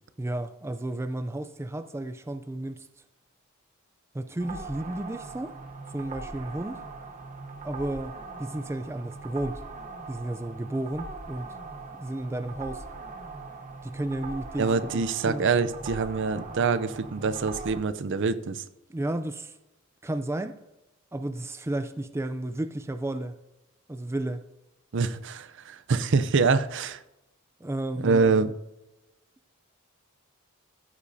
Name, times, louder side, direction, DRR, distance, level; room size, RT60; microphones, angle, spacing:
voice 1, 0.2-2.9 4.1-5.5 5.9-6.8 7.6-9.6 10.1-11.6 12.0-12.8 13.8-15.5 18.9-19.5 20.0-20.6 21.1-23.4 23.9-24.4 27.6-28.2, right 1 dB, 10° right, 0.4 m, -33 dB
sound 1, 4.4-17.8, right 3 dB, 35° right, 0.9 m, -41 dB
voice 2, 14.6-18.6 24.9-27.0 28.0-28.5, right 4 dB, 60° right, 0.6 m, -25 dB
15.0 x 8.4 x 2.7 m
head